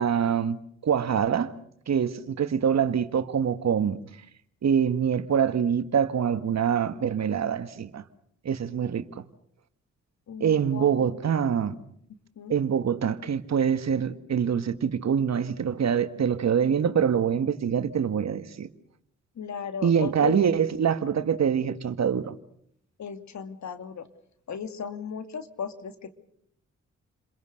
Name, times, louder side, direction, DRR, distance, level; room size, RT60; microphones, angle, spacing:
voice 1, 0.0-1.5 1.9-4.0 4.6-8.0 8.5-9.0 10.4-11.8 12.5-18.7 19.8-22.4, right 7 dB, 60° right, 1.7 m, -25 dB
voice 2, 10.3-11.2 12.4-12.6 19.4-20.4 23.0-24.1 24.5-26.1, left 7 dB, 65° left, 2.5 m, -36 dB
29.5 x 22.0 x 6.6 m
supercardioid pair, 55°, 31 cm